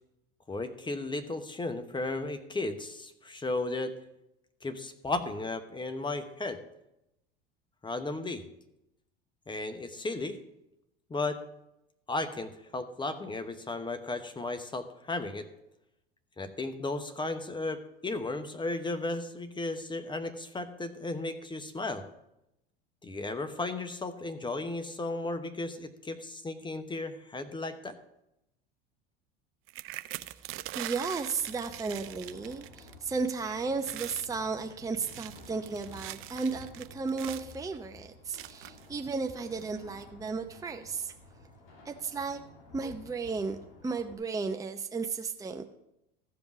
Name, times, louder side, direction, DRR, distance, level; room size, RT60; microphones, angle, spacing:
voice 1, 0.5-3.9 4.6-6.6 7.8-8.4 9.5-10.4 11.1-11.4 12.1-15.5 16.4-22.0 23.0-27.9, left 2 dB, 15° left, 9 dB, 1.0 m, -35 dB
sound 1, 29.7-33.0 33.3-33.5 33.8-34.3 34.9-37.6 38.3-38.9 39.6-39.7 40.0-40.3, right 16 dB, 45° right, 0.5 m, -42 dB
voice 2, 30.7-41.1 41.9-42.4 42.7-45.7, right 4 dB, 10° right, 5 dB, 0.7 m, -34 dB
sound 2, 31.4-44.1, left 2 dB, 75° left, 2.1 m, -53 dB
14.0 x 5.3 x 6.0 m, 0.85 s
hypercardioid pair, 80°, 29 cm